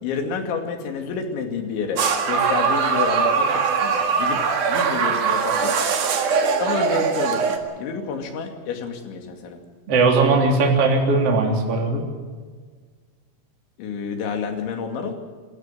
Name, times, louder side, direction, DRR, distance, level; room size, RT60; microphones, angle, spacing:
voice 1, 0.0-4.4 4.7-5.8 6.6-9.6 13.8-15.1, left 5 dB, 70° left, 4 dB, 4.7 m, -29 dB
sound 1, 2.0-7.6, right 5 dB, 50° right, 2.7 m, -21 dB
voice 2, 9.9-12.0, right 3 dB, 35° right, 0 dB, 3.8 m, -18 dB
26.5 x 13.5 x 9.2 m, 1.5 s
omnidirectional pair, 5.7 m